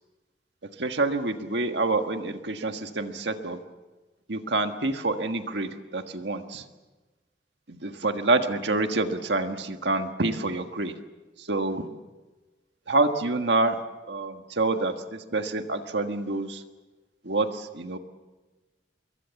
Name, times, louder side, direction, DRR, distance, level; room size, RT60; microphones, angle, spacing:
voice 1, 0.8-3.6 4.3-6.6 7.7-10.9 11.4-11.8 12.9-13.8 14.1-16.6 17.2-18.0, right 2 dB, 75° right, 6 dB, 1.6 m, -27 dB
26.0 x 22.5 x 7.1 m, 1.2 s
head